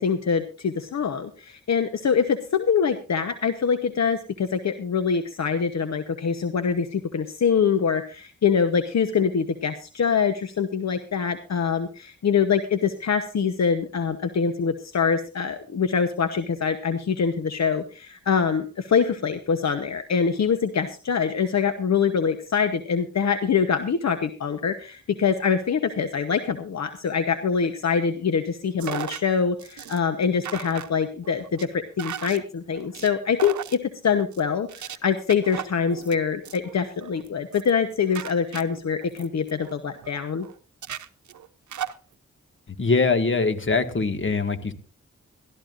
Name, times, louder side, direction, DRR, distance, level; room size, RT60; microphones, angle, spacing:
voice 1, 0.0-40.5, left 6 dB, 65° left, 9 dB, 1.0 m, -24 dB
sound 1, 28.8-29.2 29.6-30.0 30.4-30.9 31.2-31.7 32.0-32.4 32.7-33.1 33.4-33.8 34.1-34.4 34.7-35.0 35.3-36.1 36.4-36.7 37.0-37.3 37.5-37.8 38.1-40.1 40.4-40.5 40.8-41.9, right 9 dB, 85° right, 0.8 m, -36 dB
voice 2, 42.7-44.7, left 4 dB, 45° left, 8 dB, 1.8 m, -23 dB
21.5 x 13.0 x 2.6 m, 0.35 s
cardioid pair, 55°, 29 cm